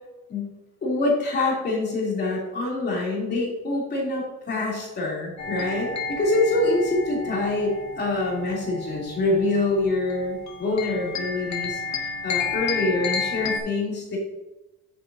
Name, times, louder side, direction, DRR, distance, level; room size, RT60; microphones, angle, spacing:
voice 1, 0.8-5.9 6.2-11.8 12.2-14.2, left 2 dB, 30° left, -3 dB, 3.0 m, -25 dB
sound 1, 5.4-13.6, left 5 dB, 50° left, 1.6 m, -31 dB
10.0 x 8.6 x 2.7 m, 1.0 s
cardioid pair, 165°, 34 cm